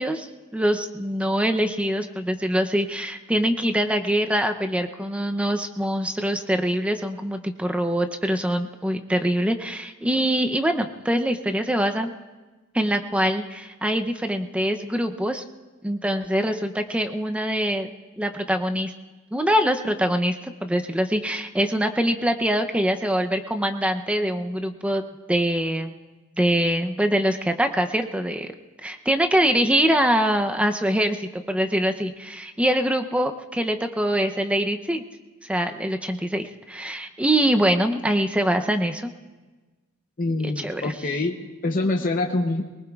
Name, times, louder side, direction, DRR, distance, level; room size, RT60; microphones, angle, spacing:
voice 1, 0.0-12.1 12.7-15.4 15.8-17.9 18.2-18.9 19.3-25.9 26.4-28.5 28.8-35.0 35.4-39.1 40.4-40.9, equal, 5° right, 6 dB, 0.6 m, -24 dB
voice 2, 40.2-42.6, left 2 dB, 40° left, 2 dB, 0.7 m, -25 dB
23.5 x 19.0 x 2.4 m, 1.3 s
head